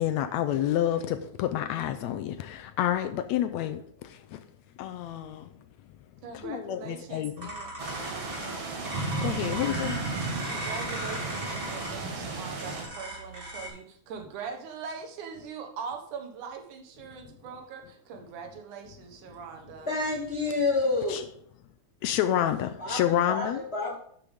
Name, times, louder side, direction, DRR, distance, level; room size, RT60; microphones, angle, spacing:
voice 1, 0.0-3.8 4.1-4.4 4.8-5.5 6.3-7.5 9.2-10.0 21.1-21.2 22.0-23.6, left 11 dB, 80° left, 9 dB, 1.7 m, -29 dB
voice 2, 6.2-7.7 8.0-8.8 10.5-20.0, right 6 dB, 85° right, 5 dB, 2.7 m, -42 dB
sound 1, 7.4-13.7, equal, 15° right, 3.1 m, -38 dB
Light Rain, 7.8-12.8, right 3 dB, 55° right, 2.4 m, -34 dB
voice 3, 19.9-21.2 22.8-24.0, left 3 dB, 60° left, -1 dB, 0.6 m, -28 dB
12.0 x 6.9 x 3.6 m, 0.65 s
omnidirectional pair, 3.4 m